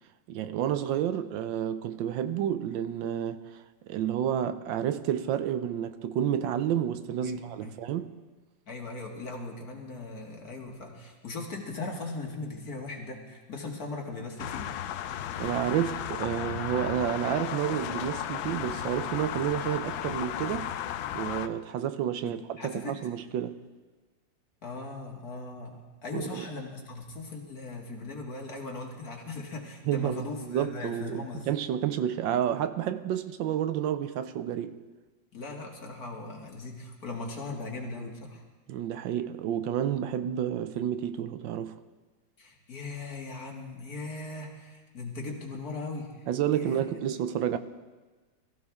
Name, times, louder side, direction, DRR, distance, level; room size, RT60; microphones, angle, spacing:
voice 1, 0.3-8.1 15.4-20.7 21.1-23.6 26.1-26.5 29.9-34.8 38.7-41.8 46.3-47.6, right 10 dB, 80° right, 1.4 m, -30 dB
voice 2, 7.2-7.8 8.7-14.7 22.2-23.0 24.6-31.5 35.3-38.4 42.4-46.3 46.5-47.0, left 3 dB, 50° left, 2.4 m, -39 dB
sound 1, 14.4-21.5, left 11 dB, 85° left, 1.4 m, -34 dB
22.0 x 14.5 x 3.6 m
omnidirectional pair, 2.1 m